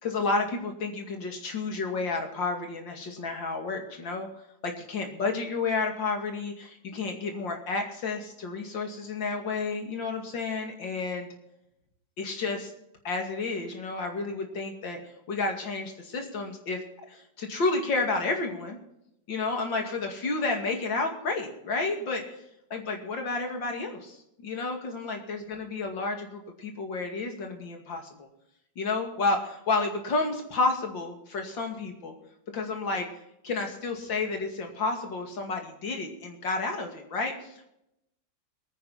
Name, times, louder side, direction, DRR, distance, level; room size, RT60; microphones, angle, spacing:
voice 1, 0.0-4.3 4.6-11.3 12.2-12.7 13.0-16.8 17.1-18.8 19.3-22.4 22.7-28.3 28.8-32.1 32.5-33.1 33.4-37.7, left 3 dB, 90° left, 3 dB, 3.0 m, -31 dB
21.5 x 9.8 x 4.2 m, 0.81 s
omnidirectional pair, 2.0 m